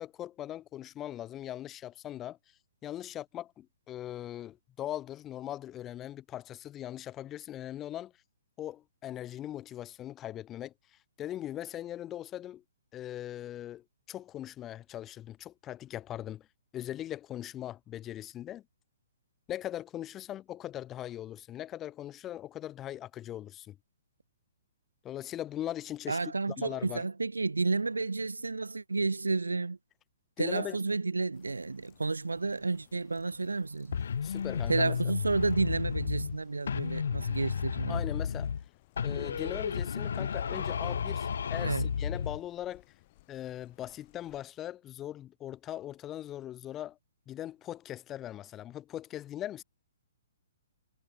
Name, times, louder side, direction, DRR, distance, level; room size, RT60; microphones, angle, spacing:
voice 1, 0.0-2.4 2.8-8.1 8.6-10.7 11.2-12.6 12.9-16.5 16.7-18.6 19.5-23.8 25.0-27.0 30.4-30.8 34.2-35.1 37.9-38.5 39.0-42.8 43.3-47.0 47.3-49.6, left 12 dB, 20° left, 1.4 m, -40 dB
voice 2, 26.1-29.8 30.4-34.0 34.7-38.0 41.6-41.9, right 3 dB, 80° right, 0.7 m, -31 dB
sound 1, 31.3-44.4, left 19 dB, 40° left, 7.1 m, -63 dB
sound 2, 33.9-36.4 36.7-38.7 39.0-42.4, left 7 dB, 65° left, 0.9 m, -32 dB
figure-of-eight pair, 125°, 0 cm